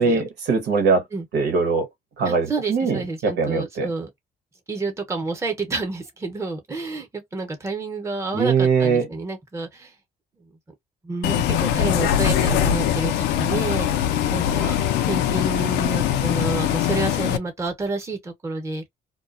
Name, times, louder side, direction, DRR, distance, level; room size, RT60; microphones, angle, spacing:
voice 1, 0.0-1.0 1.3-1.9 2.2-3.9 8.3-9.1, right 5 dB, 80° right, 1.0 m, -21 dB
voice 2, 2.2-4.1 4.7-9.9 11.0-13.9 14.3-14.7 15.1-18.8, right 3 dB, 15° right, 0.9 m, -29 dB
Bus, 11.2-17.4, left 10 dB, 90° left, 0.4 m, -22 dB
2.3 x 2.2 x 2.4 m
cardioid pair, 110°, 17 cm